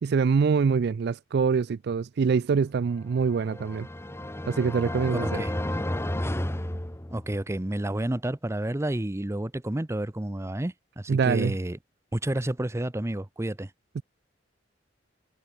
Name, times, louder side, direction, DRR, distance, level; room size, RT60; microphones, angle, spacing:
voice 1, 0.0-3.9 4.5-5.4 11.1-11.6 14.0-14.1, right 5 dB, 60° right, 0.4 m, -24 dB
sound 1, 3.1-7.5, left 1 dB, 15° left, 1.2 m, -32 dB
voice 2, 5.2-5.5 7.1-11.8 12.1-13.7, right 1 dB, 15° right, 0.7 m, -30 dB
head